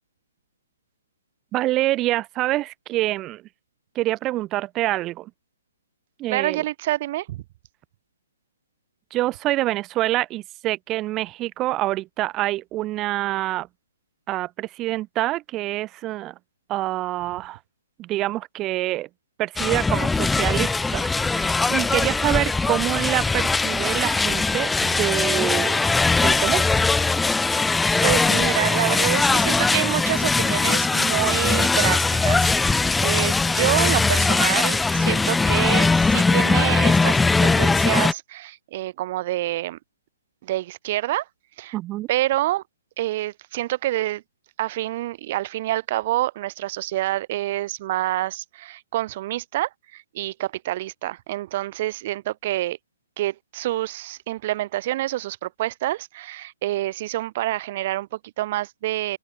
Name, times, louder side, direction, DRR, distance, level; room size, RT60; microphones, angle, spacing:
voice 1, 1.5-3.4 3.9-5.3 6.2-6.6 9.1-13.7 14.3-16.3 16.7-17.6 18.0-19.1 19.4-25.8 26.2-26.6 41.7-42.1, right 16 dB, 20° right, 1.6 m, -26 dB
voice 2, 6.3-7.4 28.0-39.8 40.4-41.3 41.6-41.8 42.1-42.6 43.0-44.2 44.6-52.8 53.2-59.2, right 15 dB, 40° right, 1.7 m, -27 dB
sound 1, 19.6-38.1, left 3 dB, 5° left, 1.0 m, -20 dB
hypercardioid pair, 155°, 0 cm